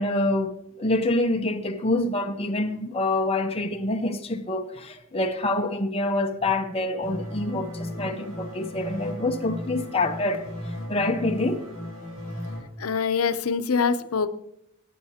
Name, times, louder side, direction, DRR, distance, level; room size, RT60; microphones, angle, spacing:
voice 1, 0.0-10.4 10.9-11.6, left 2 dB, 25° left, 0.7 m, -26 dB
sound 1, 7.0-12.6, left 1 dB, 85° right, 4.8 m, -35 dB
voice 2, 12.8-14.3, left 5 dB, 80° left, 0.7 m, -24 dB
20.0 x 10.0 x 2.8 m
head